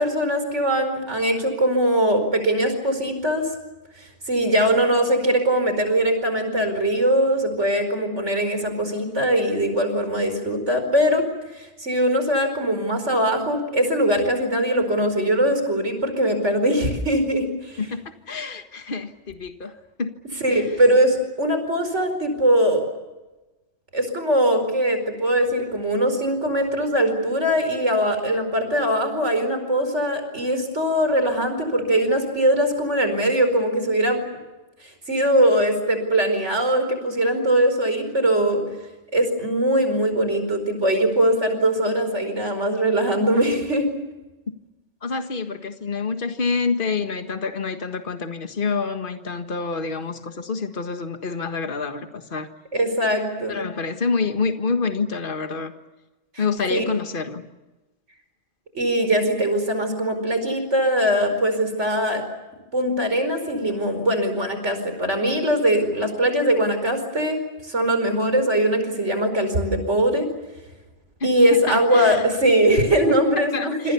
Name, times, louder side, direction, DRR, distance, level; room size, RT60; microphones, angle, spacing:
voice 1, 0.0-3.5 4.0-11.2 11.5-17.8 20.4-22.8 23.9-34.2 34.8-38.6 39.1-43.9 52.7-53.6 56.7-56.8 58.7-62.2 62.7-67.4 67.6-70.3 71.2-73.9, right 1 dB, 85° right, 8 dB, 5.1 m, -21 dB
voice 2, 17.8-19.7 20.0-20.1 20.5-20.6 45.0-52.5 53.5-55.7 56.4-57.5 71.2-71.3 71.7-72.3 73.5-73.9, left 4 dB, 50° left, 7 dB, 1.8 m, -27 dB
27.0 x 26.5 x 7.0 m, 1.1 s
omnidirectional pair, 1.2 m